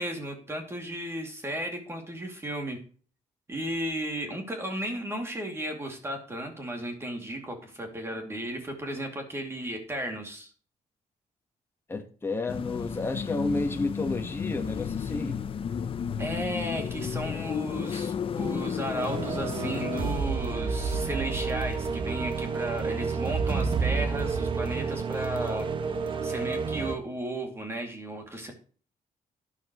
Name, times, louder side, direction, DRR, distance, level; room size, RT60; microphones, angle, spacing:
voice 1, 0.0-2.8 3.5-10.5 16.2-25.7 26.2-28.5, right 1 dB, 20° right, 2.5 m, -34 dB
voice 2, 11.9-15.4, left 3 dB, 15° left, 1.4 m, -31 dB
sound 1, 12.5-20.1, left 7 dB, 40° left, 0.7 m, -33 dB
sound 2, 19.0-27.0, right 5 dB, 35° right, 1.0 m, -30 dB
11.5 x 11.0 x 3.1 m
cardioid pair, 165°, 14 cm